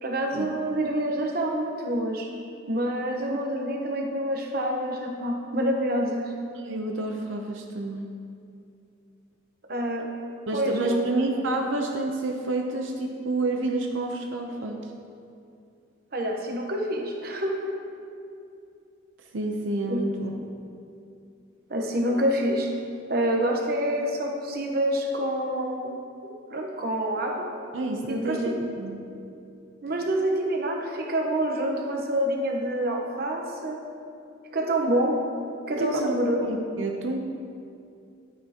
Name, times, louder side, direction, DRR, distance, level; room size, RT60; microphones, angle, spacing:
voice 1, 0.0-2.3 2.7-6.3 9.7-10.1 10.5-11.3 16.1-17.7 19.9-20.0 21.7-22.7 23.1-25.9 26.2-27.5 28.1-28.6 29.8-33.8 34.5-35.2 35.7-36.4, right 1 dB, 50° right, 2 dB, 1.0 m, -27 dB
voice 2, 6.6-8.1 10.5-14.9 19.3-20.3 27.7-29.0 35.8-37.2, right 2 dB, 75° right, 2 dB, 0.7 m, -29 dB
12.0 x 9.1 x 2.9 m, 2.6 s
head